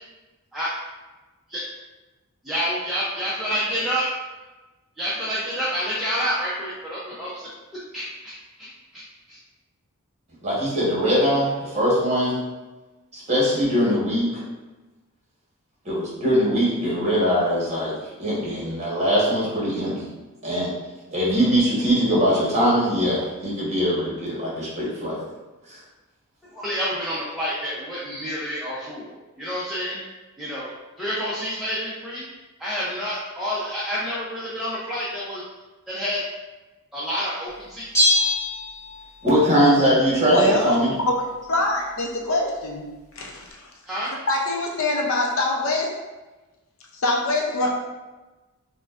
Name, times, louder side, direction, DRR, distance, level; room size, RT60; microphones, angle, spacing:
voice 1, 2.4-4.1 5.0-7.5 7.9-9.0 9.3-9.4 26.5-30.0 30.4-30.7 31.0-32.3 32.6-35.4 35.9-36.2 36.9-38.2 43.9-44.1, equal, ahead, -10 dB, 0.6 m, -28 dB
voice 2, 10.4-12.4 13.1-14.4 15.8-17.9 18.2-20.0 20.4-20.7 21.1-25.2 25.7-25.8 39.2-40.9, equal, 30° right, -7 dB, 1.2 m, -21 dB
Bell, 37.9-39.3 39.6-39.7, left 1 dB, 15° left, 1.3 m, -22 dB
voice 3, 40.3-43.7 44.3-46.0 46.9-47.7, left 2 dB, 65° left, 0 dB, 0.6 m, -24 dB
5.0 x 2.2 x 2.4 m, 1.1 s
head